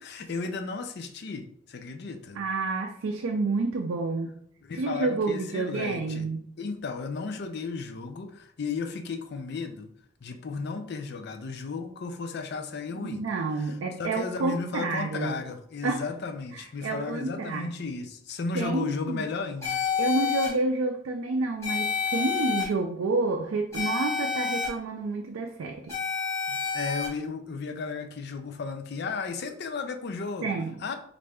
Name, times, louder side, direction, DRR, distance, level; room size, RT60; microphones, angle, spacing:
voice 1, 0.0-2.4 4.6-6.3 6.6-9.9 10.2-13.3 13.5-19.8 26.5-30.5 30.8-31.0, left 4 dB, 55° left, 6 dB, 0.4 m, -34 dB
voice 2, 2.4-4.4 4.7-6.5 12.9-15.4 15.8-16.0 16.5-17.7 18.5-19.2 20.0-25.9 30.4-30.7, right 3 dB, 80° right, 3 dB, 0.4 m, -29 dB
sound 1, 19.6-20.5 21.6-22.6 23.7-24.7 25.9-27.1, left 6 dB, 15° left, 1.5 m, -28 dB
4.2 x 2.5 x 3.4 m, 0.65 s
head